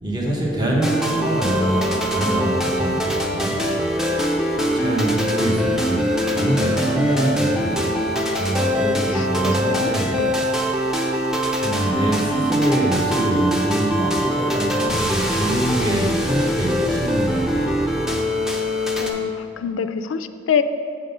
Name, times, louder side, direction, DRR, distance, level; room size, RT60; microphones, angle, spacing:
voice 1, 0.0-3.6 4.7-6.1 6.3-8.0 8.4-10.1 11.6-17.8, right 1 dB, 25° right, -3 dB, 0.9 m, -24 dB
sound 1, 0.8-19.1, equal, 5° right, 0.4 m, -22 dB
voice 2, 9.1-10.3 19.0-20.6, left 7 dB, 85° left, 11 dB, 0.3 m, -26 dB
6.8 x 3.8 x 5.4 m, 2.6 s
head